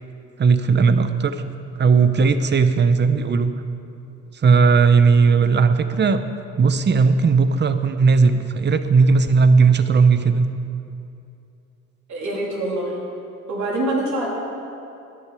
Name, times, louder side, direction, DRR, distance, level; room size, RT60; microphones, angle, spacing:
voice 1, 0.4-1.4 1.8-3.5 4.4-6.2 6.6-10.5, right 5 dB, 35° right, 10 dB, 0.8 m, -16 dB
voice 2, 12.1-13.0 13.5-14.3, right 1 dB, 70° right, -4 dB, 3.5 m, -25 dB
13.5 x 10.5 x 4.9 m, 2.7 s
cardioid pair, 90°, 30 cm